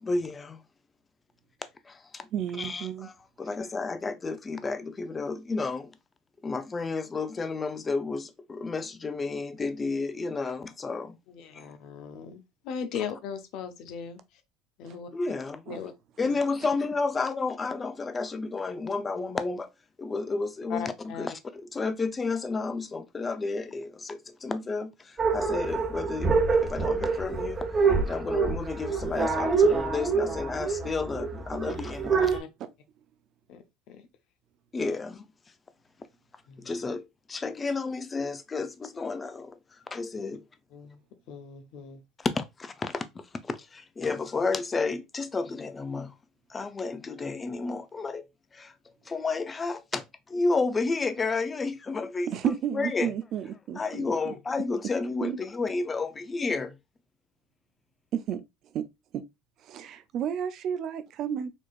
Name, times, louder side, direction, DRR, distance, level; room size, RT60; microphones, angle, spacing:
voice 1, 0.0-0.6 1.9-2.3 2.6-3.1 3.4-6.0 6.4-11.2 11.5-11.6 15.1-15.7 16.2-19.7 20.0-26.3 26.6-27.6 28.0-32.3 34.7-35.3 36.6-39.6 39.9-40.4 42.2-46.2 46.5-48.3 48.5-48.7 49.1-53.1 53.8-56.8, left 3 dB, 25° left, 0.6 m, -31 dB
voice 2, 2.3-3.1 14.8-15.0 15.7-15.8 52.3-54.3 55.2-55.4 58.1-58.4 58.7-58.8 59.1-59.2 59.6-61.5, right 9 dB, 55° right, 0.5 m, -32 dB
voice 3, 11.3-14.2 14.8-15.1 15.7-15.9 16.2-16.4 20.7-21.3 32.1-32.5 33.5-33.6 33.9-34.1 36.5-36.7 40.7-41.0 41.3-42.0, left 7 dB, 65° left, 0.7 m, -38 dB
sound 1, 25.2-32.4, right 4 dB, 35° right, 1.2 m, -26 dB
4.3 x 3.0 x 2.4 m
hypercardioid pair, 75°, 0 cm